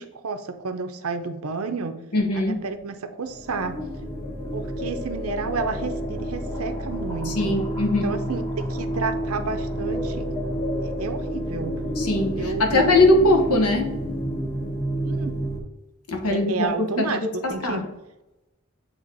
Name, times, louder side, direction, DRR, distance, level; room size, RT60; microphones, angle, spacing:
voice 1, 0.0-2.0 2.4-3.8 4.5-8.4 8.7-10.3 10.8-11.7 12.4-13.0 15.0-15.3 16.2-17.2 17.5-17.8, right 4 dB, 70° right, 8 dB, 0.6 m, -31 dB
voice 2, 2.1-2.6 7.3-8.1 12.0-14.0 16.1-17.9, left 2 dB, 85° left, 3 dB, 1.1 m, -21 dB
sound 1, 3.2-15.6, equal, 10° left, 1.6 m, -29 dB
8.1 x 3.0 x 4.0 m, 0.97 s
head